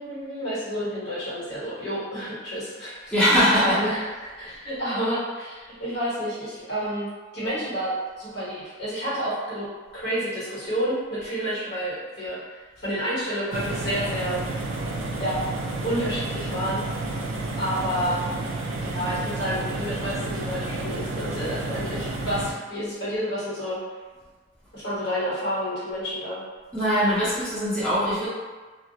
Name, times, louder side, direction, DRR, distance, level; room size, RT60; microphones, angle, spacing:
voice 1, 0.0-3.1 3.6-7.1 7.3-9.6 9.9-14.4 15.2-15.4 15.8-16.8 17.6-18.3 18.8-23.8 24.7-26.4, equal, 60° left, -10 dB, 1.2 m, -29 dB
voice 2, 3.1-3.8 26.7-28.3, equal, 5° left, -13 dB, 0.6 m, -21 dB
sound 1, 13.5-22.5, right 2 dB, 85° right, 0.4 m, -31 dB
2.3 x 2.0 x 2.7 m, 1.4 s
head